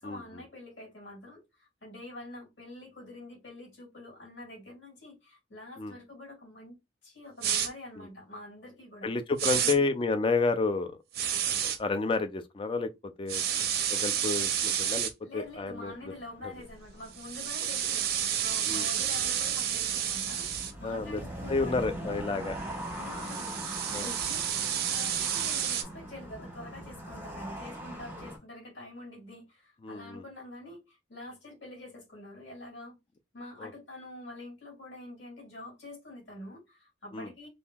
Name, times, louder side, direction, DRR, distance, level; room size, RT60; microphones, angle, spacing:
voice 1, 0.0-6.8 7.0-9.1 9.5-9.9 15.2-22.2 23.0-23.6 23.9-33.0 33.3-37.5, left 1 dB, 60° left, 2.1 m, -46 dB
sound 1, 7.4-7.7 9.4-9.8 11.1-11.8 13.3-15.1 17.1-20.7 22.8-25.8, right 9 dB, 50° right, 0.5 m, -30 dB
voice 2, 9.0-11.0 11.5-13.4 13.9-16.1 18.7-18.9 20.8-21.2 21.5-22.6 23.9-24.1 29.8-30.2 33.6-33.7 37.1-37.3, left 3 dB, 25° left, 0.3 m, -30 dB
sound 2, 15.4-28.4, right 1 dB, 10° right, 0.9 m, -42 dB
3.6 x 2.6 x 2.2 m
head